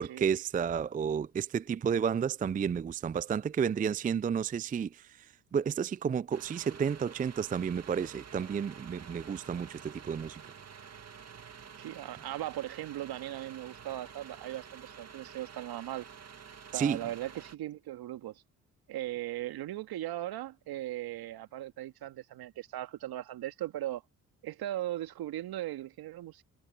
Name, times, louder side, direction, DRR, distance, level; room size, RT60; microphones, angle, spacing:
voice 1, 0.0-10.4 16.7-17.0, right 7 dB, 20° right, 0.4 m, -31 dB
sound 1, 6.3-17.6, right 6 dB, 40° right, 2.2 m, -50 dB
voice 2, 11.8-16.1 16.7-18.4 18.9-24.0 24.4-26.4, right 14 dB, 65° right, 2.2 m, -38 dB
hypercardioid pair, 50°, 40 cm